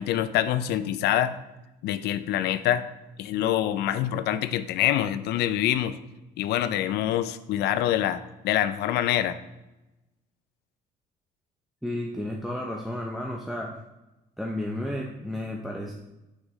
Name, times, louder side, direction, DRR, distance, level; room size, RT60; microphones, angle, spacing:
voice 1, 0.0-1.4 1.8-2.9 3.2-6.0 6.4-9.4, left 11 dB, 75° left, 13 dB, 0.4 m, -25 dB
voice 2, 11.8-13.7 14.4-15.9, left 1 dB, ahead, -1 dB, 0.6 m, -32 dB
6.2 x 5.5 x 3.1 m, 0.99 s
cardioid pair, 110°, 17 cm